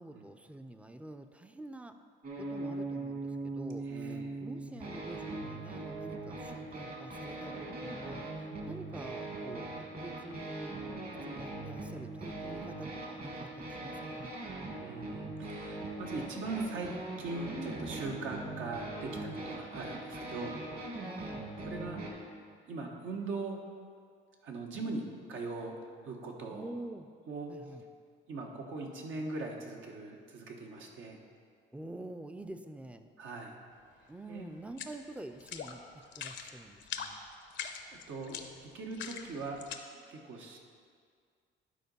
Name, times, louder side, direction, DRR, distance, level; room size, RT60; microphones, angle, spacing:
voice 1, 0.0-2.0 2.4-8.3 8.7-10.8 11.2-14.3 21.0-21.4 24.9-25.0 26.5-27.1 27.5-27.8 31.7-33.1 34.1-37.2, right 2 dB, 5° right, 8 dB, 0.4 m, -47 dB
sound 1, 2.2-22.1, right 2 dB, 50° right, 1.7 m, -41 dB
voice 2, 3.8-4.4 14.8-16.9 17.2-20.6 21.6-22.2 22.7-23.6 24.4-25.0 25.3-25.8 26.0-26.8 27.2-27.5 28.3-31.2 33.2-33.5 34.3-34.5 38.1-39.6 39.9-40.6, right 3 dB, 80° right, 1 dB, 1.2 m, -40 dB
sound 2, 34.7-35.0 35.4-35.7 36.0-36.5 36.8-37.1 37.5-39.8, left 8 dB, 70° left, 0.7 m, -41 dB
11.0 x 4.0 x 5.3 m, 2.1 s
cardioid pair, 90°, 20 cm